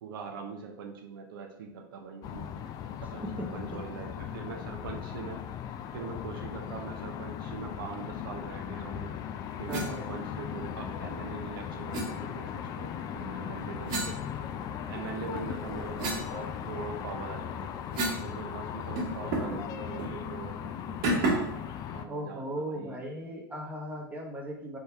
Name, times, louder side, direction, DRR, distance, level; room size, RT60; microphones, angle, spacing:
voice 1, 0.0-2.5 3.0-5.4 5.9-9.1 9.6-14.3 14.9-17.7 18.2-23.0, right 5 dB, 70° right, 3 dB, 0.7 m, -42 dB
sound 1, 2.2-22.0, left 9 dB, 30° left, 0.3 m, -38 dB
voice 2, 3.4-4.1 4.5-4.6 9.7-10.0 22.1-24.8, right 1 dB, 15° right, -1 dB, 0.9 m, -38 dB
sound 2, 9.7-9.9 11.9-12.1 13.9-14.9 15.4-18.3 18.6-18.7 19.0-19.6 20.0-20.2 21.0-21.6, right 2 dB, 50° right, 1.5 m, -32 dB
3.6 x 2.7 x 4.5 m, 0.79 s
hypercardioid pair, 110°, 12 cm